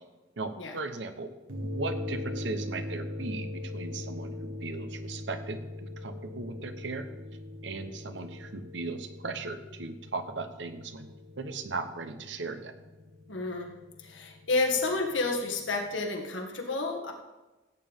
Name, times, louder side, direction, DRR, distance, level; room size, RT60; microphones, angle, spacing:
voice 1, 0.4-1.3 1.6-7.1 7.6-11.1 11.4-12.7, right 3 dB, 75° right, 9 dB, 1.0 m, -37 dB
sound 1, 1.5-16.0, left 1 dB, 90° right, 1.3 m, -41 dB
voice 2, 13.3-13.8 14.0-17.1, left 3 dB, 85° left, 2 dB, 1.9 m, -30 dB
16.0 x 9.1 x 3.6 m, 1.1 s
head